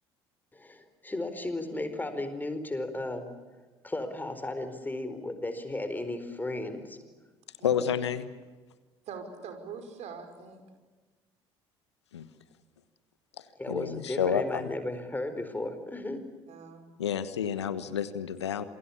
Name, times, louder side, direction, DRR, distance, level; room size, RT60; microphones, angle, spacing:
voice 1, 0.5-3.3 3.8-7.0 13.6-16.2, left 2 dB, 15° left, 9 dB, 4.4 m, -35 dB
voice 2, 7.6-8.3 12.1-12.3 13.4-14.7 17.0-18.6, left 8 dB, 80° left, 14 dB, 1.3 m, -30 dB
voice 3, 9.1-10.6 16.5-16.9, right 5 dB, 50° right, 6 dB, 5.4 m, -43 dB
27.5 x 22.0 x 8.6 m, 1.3 s
figure-of-eight pair, 55°, 14 cm